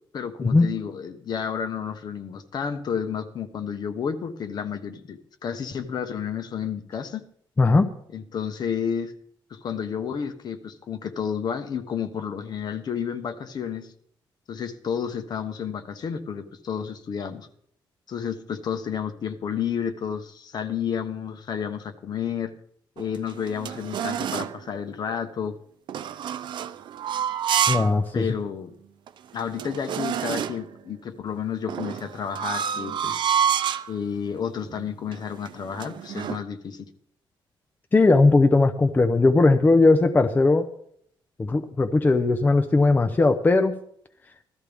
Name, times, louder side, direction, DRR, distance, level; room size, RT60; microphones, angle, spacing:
voice 1, 0.1-7.2 8.1-9.1 9.5-13.9 14.5-17.5 18.1-22.5 23.0-25.6 28.1-28.7 29.3-33.3 33.9-36.8, left 7 dB, 55° left, 8 dB, 1.2 m, -31 dB
sound 1, 23.0-24.6 25.9-28.0 28.4-28.5 29.1-29.2 29.4-30.7 31.7-33.9 34.6-34.8 35.1-36.4, right 8 dB, 65° right, 0.5 m, -28 dB
voice 2, 27.7-28.2 37.9-40.7 41.4-43.7, left 3 dB, 20° left, 7 dB, 0.7 m, -18 dB
16.0 x 13.0 x 3.5 m, 0.67 s
cardioid pair, 130°, 9 cm